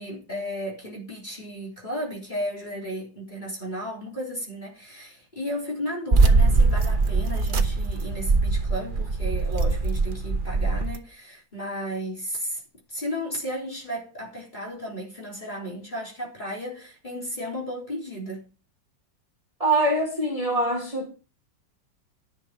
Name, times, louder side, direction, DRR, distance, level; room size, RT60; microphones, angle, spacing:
voice 1, 0.0-12.6 12.9-18.5, equal, 25° left, 3.7 m, -34 dB
sound 1, 6.1-11.0, right 3 dB, 40° right, 0.8 m, -22 dB
voice 2, 19.6-21.1, right 2 dB, 20° right, 3.3 m, -24 dB
11.0 x 6.5 x 5.8 m
omnidirectional pair, 2.0 m